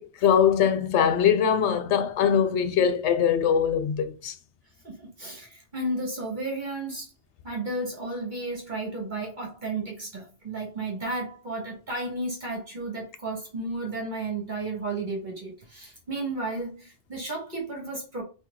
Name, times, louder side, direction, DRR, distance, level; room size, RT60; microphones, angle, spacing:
voice 1, 0.0-4.3, left 8 dB, 90° left, 0.9 m, -22 dB
voice 2, 4.8-7.1 7.4-18.2, right 2 dB, 45° right, 1.8 m, -33 dB
4.5 x 2.9 x 3.6 m
omnidirectional pair, 1.1 m